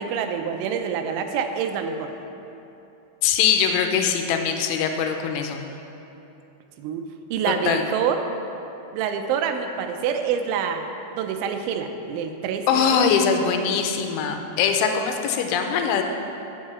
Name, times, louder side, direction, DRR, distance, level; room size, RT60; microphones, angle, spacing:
voice 1, 0.0-2.1 6.8-7.1 7.3-8.2 8.9-10.8 11.1-13.1, right 7 dB, 85° right, 6 dB, 3.1 m, -26 dB
voice 2, 3.2-5.6 7.5-7.8 12.7-16.0, left 7 dB, 85° left, 4 dB, 3.1 m, -22 dB
9.4 x 6.6 x 7.5 m, 2.9 s
omnidirectional pair, 5.4 m